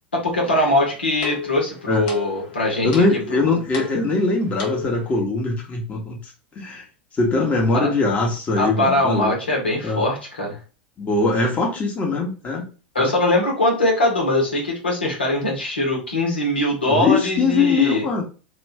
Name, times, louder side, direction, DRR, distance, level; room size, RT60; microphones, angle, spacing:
voice 1, 0.1-3.0 3.3-3.5 7.7-7.9 8.6-10.6 12.9-18.0, left 1 dB, 80° left, -1 dB, 1.3 m, -21 dB
sound 1, 0.6-5.2, left 7 dB, 55° left, 1.1 m, -35 dB
voice 2, 2.8-6.2 6.6-6.8 7.2-9.3 9.8-10.0 11.0-12.6 13.0-13.1 16.9-18.2, left 3 dB, 25° left, -1 dB, 1.1 m, -21 dB
3.0 x 2.6 x 3.3 m, 0.35 s
figure-of-eight pair, 85°, 6 cm